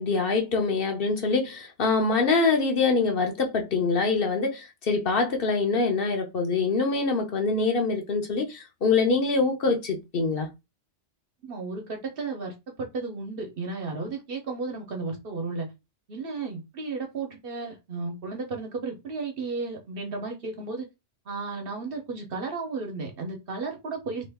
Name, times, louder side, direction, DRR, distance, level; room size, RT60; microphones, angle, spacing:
voice 1, 0.0-10.5, left 4 dB, 55° left, 0.8 m, -24 dB
voice 2, 11.4-15.7 16.1-20.9 21.3-24.3, right 4 dB, 55° right, 1.0 m, -34 dB
2.9 x 2.4 x 3.4 m
omnidirectional pair, 1.2 m